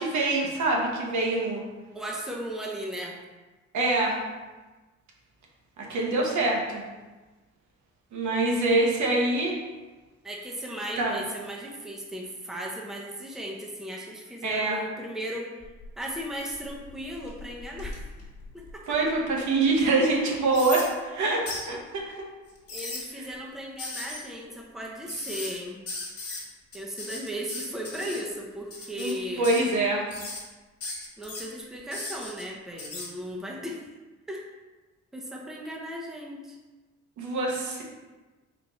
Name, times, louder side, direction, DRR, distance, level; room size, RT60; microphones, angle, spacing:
voice 1, 0.0-1.6 3.7-4.2 5.8-6.8 8.1-9.6 11.0-11.1 14.4-14.8 18.9-22.2 29.0-30.1 37.2-37.8, right 2 dB, 70° right, -1 dB, 1.0 m, -25 dB
voice 2, 1.9-3.2 10.2-15.5 16.0-18.0 18.5-19.0 22.7-25.8 26.7-29.5 31.2-33.9 34.3-34.4 35.1-36.6, equal, ahead, -1 dB, 0.6 m, -36 dB
rhodes squeak, 15.6-16.1 16.6-19.2 19.7-19.8 20.5-20.9 21.5-21.7 22.5-23.0 23.8-24.2 25.1-25.6 25.9-26.4 26.7-28.2 28.7-29.1 29.4-29.8 30.1-30.4 30.8-31.4 31.9-32.4 32.8-33.1, left 3 dB, 50° left, 1.4 m, -37 dB
4.4 x 2.5 x 4.1 m, 1.2 s
cardioid pair, 90°, 30 cm